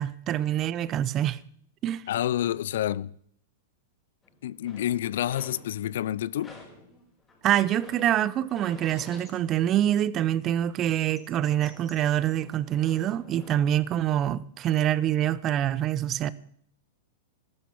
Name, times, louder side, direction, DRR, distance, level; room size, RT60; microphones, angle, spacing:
voice 1, 0.0-1.4 1.8-2.0 7.4-16.3, right 11 dB, 35° right, 0.8 m, -25 dB
voice 2, 2.1-3.1 4.4-6.6, left 12 dB, 70° left, 0.5 m, -28 dB
sound 1, 4.2-6.0 6.4-10.2 10.5-13.6, left 2 dB, 15° left, 6.0 m, -51 dB
13.5 x 12.0 x 7.2 m
hypercardioid pair, 120°, 0 cm